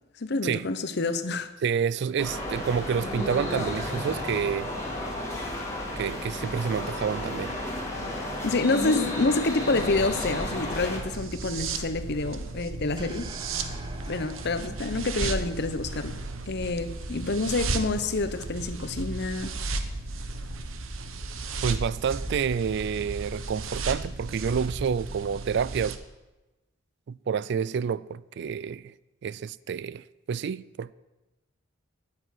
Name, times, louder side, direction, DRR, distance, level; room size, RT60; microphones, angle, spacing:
voice 1, 0.2-1.5 8.4-13.3 14.1-19.5, left 3 dB, 50° left, 0.9 m, -28 dB
voice 2, 1.6-4.7 6.0-7.6 21.6-26.0 27.1-28.9 29.2-30.9, right 7 dB, 55° right, 0.3 m, -29 dB
sound 1, 2.2-11.0, left 1 dB, 15° left, 2.5 m, -32 dB
sound 2, 9.8-26.0, right 3 dB, 70° right, 1.1 m, -35 dB
sound 3, 13.0-17.4, right 1 dB, 20° right, 1.0 m, -47 dB
9.1 x 8.8 x 9.6 m
head